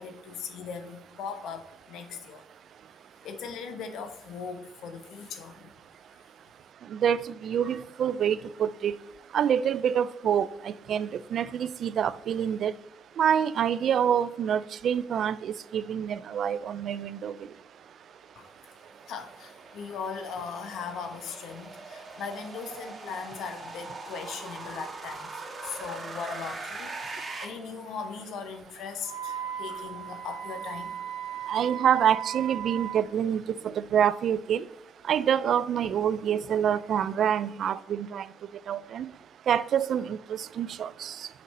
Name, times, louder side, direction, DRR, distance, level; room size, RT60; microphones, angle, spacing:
voice 1, 0.0-2.4 3.2-5.7 18.4-18.5 19.1-31.0, left 6 dB, 80° left, 1.0 m, -39 dB
voice 2, 6.9-9.0 9.3-12.7 13.2-17.3 31.5-34.6 35.1-38.3 38.7-39.1 39.5-41.3, right 8 dB, 65° right, 0.3 m, -27 dB
sound 1, 17.9-27.4, right 3 dB, 30° right, 1.7 m, -42 dB
Wind instrument woodwind instrument, 29.0-33.1, right 9 dB, 90° right, 1.0 m, -36 dB
6.4 x 5.4 x 4.2 m
cardioid pair, 90°, 0 cm